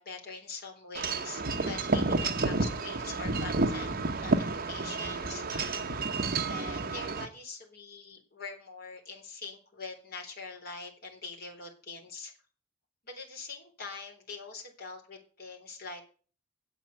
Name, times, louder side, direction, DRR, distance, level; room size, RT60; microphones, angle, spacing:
voice 1, 0.0-5.8 6.5-12.3 13.0-16.0, left 4 dB, 50° left, 1 dB, 3.7 m, -44 dB
Wind chime / Wind, 1.0-7.3, right 3 dB, 50° right, 1.1 m, -30 dB
8.9 x 8.1 x 8.0 m, 0.40 s
head